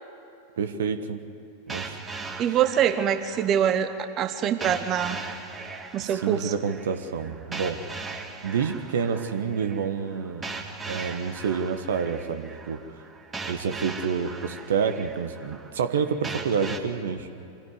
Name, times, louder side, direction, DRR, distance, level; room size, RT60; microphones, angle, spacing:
voice 1, 0.6-1.2 1.7-2.0 6.0-7.8 8.4-10.5 10.9-12.8 13.4-17.3, right 6 dB, 60° right, 9 dB, 1.3 m, -28 dB
sound 1, 1.7-16.8, right 4 dB, 15° right, 2.3 m, -39 dB
voice 2, 2.4-5.2 5.9-6.5, right 9 dB, 30° right, 10 dB, 1.1 m, -24 dB
25.5 x 17.0 x 9.8 m, 2.8 s
figure-of-eight pair, 90°, 0 cm